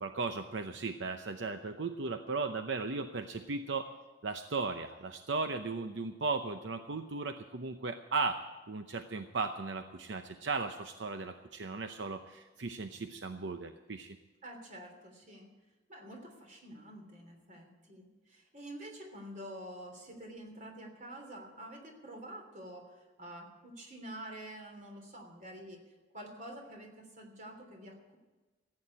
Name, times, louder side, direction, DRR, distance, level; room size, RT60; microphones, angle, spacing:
voice 1, 0.0-3.9 4.2-8.4 8.7-14.2, right 4 dB, 80° right, 7 dB, 0.7 m, -36 dB
voice 2, 14.4-15.5 15.9-28.2, right 1 dB, 45° right, 3 dB, 3.2 m, -48 dB
15.0 x 8.7 x 8.7 m, 1.2 s
head